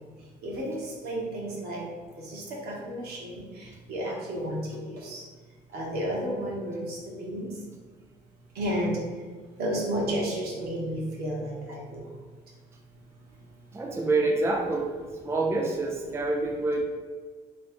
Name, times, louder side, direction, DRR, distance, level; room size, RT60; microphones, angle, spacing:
voice 1, 0.4-0.7 1.0-1.8 2.3-3.4 3.9-4.6 4.8-5.2 5.7-7.5 8.5-9.0 9.6-12.0, equal, 70° right, -4 dB, 1.4 m, -31 dB
voice 2, 13.7-14.9 15.2-16.8, right 2 dB, 15° right, 1 dB, 0.4 m, -27 dB
3.3 x 3.2 x 4.2 m, 1.5 s
cardioid pair, 110°, 17 cm